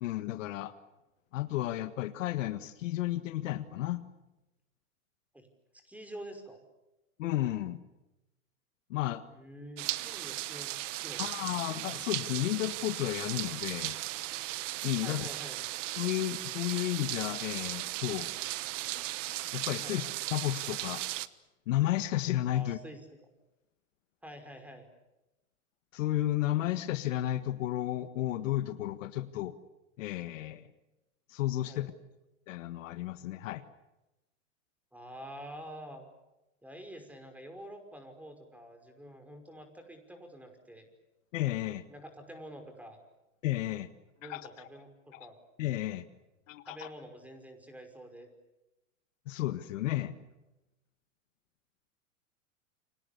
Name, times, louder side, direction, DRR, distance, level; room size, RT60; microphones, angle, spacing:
voice 1, 0.0-0.7 1.3-4.0 7.2-7.8 8.9-9.2 11.2-14.0 14.8-15.3 16.0-18.3 19.5-20.0 20.3-21.0 21.7-22.8 25.9-29.5 30.0-30.7 31.3-31.9 32.5-33.6 41.3-41.9 43.4-43.9 44.2-44.5 45.1-45.3 45.6-46.0 46.5-46.9 49.3-50.2, left 14 dB, 65° left, 11 dB, 1.7 m, -32 dB
voice 2, 5.8-6.6 9.3-11.5 15.0-15.6 19.8-20.0 22.5-23.0 24.2-24.9 31.7-31.9 34.9-36.1 36.6-40.9 41.9-43.0 44.2-45.4 46.7-48.3, equal, 5° right, 7 dB, 5.5 m, -47 dB
sound 1, 9.8-21.3, right 16 dB, 65° right, 1.3 m, -37 dB
29.5 x 25.5 x 7.0 m, 0.97 s
hypercardioid pair, 120°, 40 cm